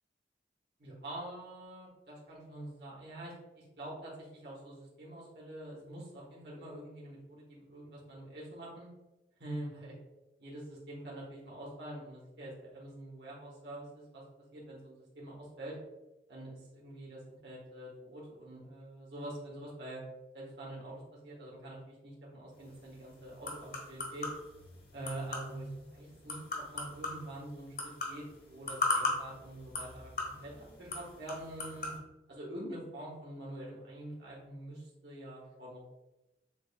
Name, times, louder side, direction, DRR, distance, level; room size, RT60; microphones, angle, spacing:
voice 1, 0.8-8.9 9.4-9.9 10.4-14.2 14.5-15.8 16.3-20.0 20.3-24.3 24.9-27.8 28.1-31.9 32.3-35.9, right 1 dB, 70° right, -4 dB, 1.4 m, -46 dB
sound 1, 22.5-32.0, left 2 dB, 55° left, 1.3 m, -39 dB
7.5 x 2.5 x 2.3 m, 0.99 s
head